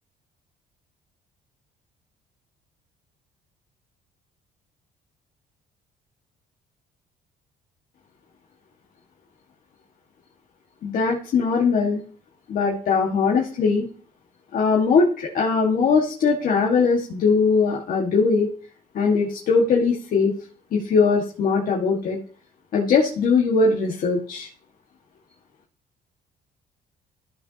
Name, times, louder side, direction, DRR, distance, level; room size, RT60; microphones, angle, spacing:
voice 1, 10.8-12.0 12.5-13.9 14.5-18.5 18.9-20.3 20.7-22.2 22.7-24.5, left 4 dB, 55° left, -2 dB, 1.6 m, -20 dB
13.5 x 5.8 x 2.8 m, 0.43 s
cardioid pair, 110°, 17 cm